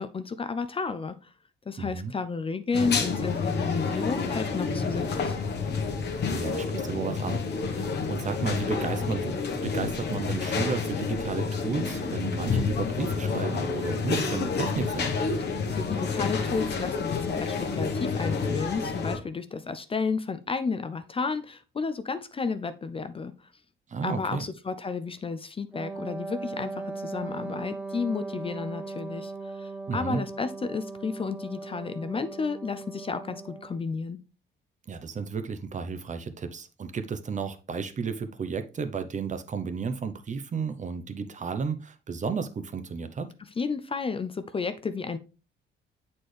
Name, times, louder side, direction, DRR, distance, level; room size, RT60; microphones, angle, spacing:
voice 1, 0.0-1.3 1.7-5.3 15.5-23.3 24.0-34.2 43.6-45.2, left 4 dB, 30° left, 12 dB, 0.5 m, -32 dB
voice 2, 1.8-2.1 6.3-15.1 23.9-24.4 29.9-30.2 34.9-43.3, right 5 dB, 40° right, 9 dB, 0.7 m, -33 dB
sound 1, 2.7-19.2, left 4 dB, 60° left, 1.1 m, -29 dB
Wind instrument woodwind instrument, 25.7-33.8, right 3 dB, 5° right, 1.1 m, -38 dB
7.6 x 4.3 x 3.2 m, 0.34 s
cardioid pair, 90°, 20 cm